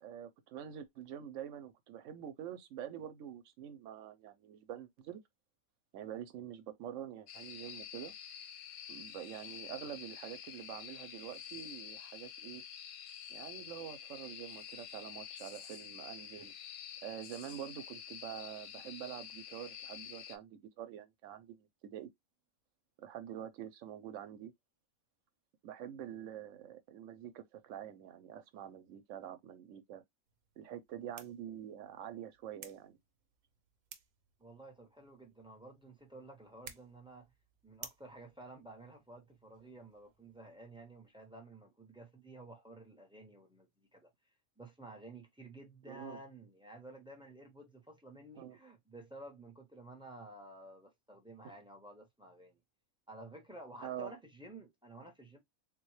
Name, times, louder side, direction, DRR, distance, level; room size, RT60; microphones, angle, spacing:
voice 1, 0.0-5.2 5.9-8.1 8.9-12.6 13.3-16.5 17.0-22.1 23.0-24.5 25.6-30.0 30.6-33.0 45.9-46.2 48.4-48.6 53.8-54.1, right 10 dB, 70° right, 0.9 m, -46 dB
sound 1, 7.3-20.4, left 9 dB, 90° left, 1.1 m, -48 dB
sound 2, 30.3-41.3, right 8 dB, 90° right, 1.1 m, -58 dB
voice 2, 34.4-37.3 37.6-44.1 44.6-52.6 53.1-55.4, right 2 dB, 5° right, 0.5 m, -53 dB
3.5 x 2.2 x 3.1 m
omnidirectional pair, 1.5 m